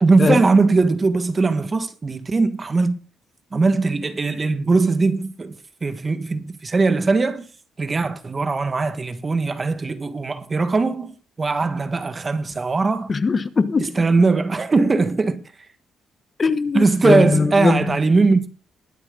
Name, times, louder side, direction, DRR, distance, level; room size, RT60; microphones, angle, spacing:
voice 1, 0.0-3.0 3.5-7.5 7.8-11.1 11.4-13.1 14.0-15.4 16.7-18.5, right 3 dB, 30° right, 1.6 m, -20 dB
voice 2, 13.1-14.0 16.4-18.0, left 4 dB, 35° left, 1.1 m, -21 dB
21.5 x 7.7 x 3.9 m
cardioid pair, 90°, 0 cm